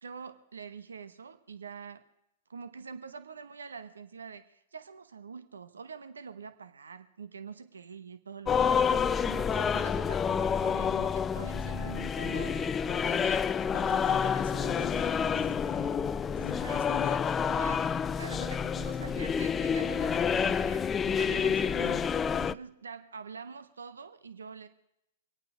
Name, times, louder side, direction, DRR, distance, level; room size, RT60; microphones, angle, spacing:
voice 1, 0.0-2.0 2.5-13.4 13.9-14.4 16.6-16.9 17.5-17.9 18.2-24.7, right 6 dB, 85° right, 10 dB, 1.0 m, -45 dB
sound 1, 8.5-22.5, left 7 dB, 20° left, 0.5 m, -28 dB
voice 2, 13.7-16.0 16.3-17.3 21.8-22.0, left 7 dB, 70° left, 5 dB, 1.2 m, -43 dB
25.0 x 8.8 x 4.9 m, 0.82 s
hypercardioid pair, 110°, 0 cm